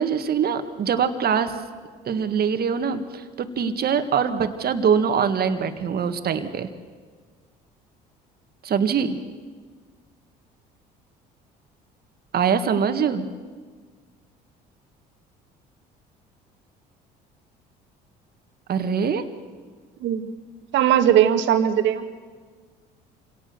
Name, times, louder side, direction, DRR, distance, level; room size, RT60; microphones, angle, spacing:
voice 1, 0.0-1.6 2.1-6.7 8.6-9.2 12.3-13.3 18.7-19.2, right 7 dB, 50° right, 8 dB, 1.9 m, -23 dB
voice 2, 20.7-22.1, right 10 dB, 70° right, 7 dB, 1.9 m, -19 dB
27.0 x 18.0 x 7.0 m, 1.5 s
supercardioid pair, 70°, 20 cm